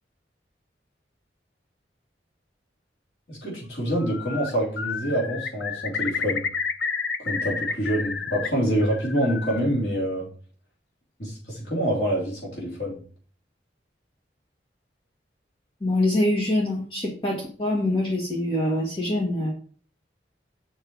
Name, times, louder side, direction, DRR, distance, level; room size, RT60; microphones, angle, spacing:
voice 1, 3.3-6.4 7.2-10.3 11.2-13.0, equal, 65° left, -4 dB, 3.3 m, -26 dB
Bird, 3.9-4.5 4.8-8.5 8.8-9.6, left 5 dB, 80° left, 0.8 m, -30 dB
voice 2, 15.8-19.5, left 1 dB, 30° left, -3 dB, 1.5 m, -24 dB
7.2 x 5.5 x 4.6 m, 0.42 s
head